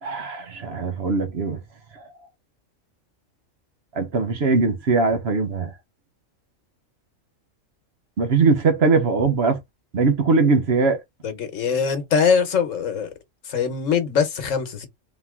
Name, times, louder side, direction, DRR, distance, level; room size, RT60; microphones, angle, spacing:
voice 1, 0.0-1.6 3.9-5.7 8.2-9.6 9.9-11.0, right 4 dB, 55° right, 1.1 m, -20 dB
voice 2, 11.2-13.1 13.5-14.9, left 6 dB, 70° left, 1.4 m, -22 dB
3.7 x 2.9 x 3.6 m
omnidirectional pair, 1.4 m